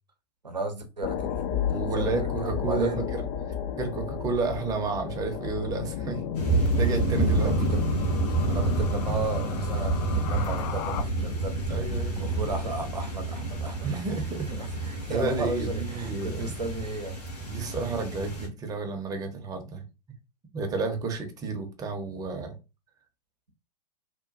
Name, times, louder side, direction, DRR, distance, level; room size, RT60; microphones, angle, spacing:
voice 1, 0.4-1.4 1.7-3.0 7.5-7.9 8.4-11.8 12.2-14.0 14.5-17.2, right 2 dB, 90° right, 0.6 m, -34 dB
sound 1, 1.0-11.0, left 8 dB, 35° left, 0.4 m, -33 dB
voice 2, 1.7-3.2 3.7-6.2 6.5-7.5 11.7-12.2 13.8-14.5 15.1-16.5 17.4-19.8 20.5-22.6, right 4 dB, 15° right, 0.6 m, -31 dB
sound 2, 6.3-18.5, right 2 dB, 70° left, 1.3 m, -29 dB
3.0 x 2.2 x 2.5 m
figure-of-eight pair, 100°, 21 cm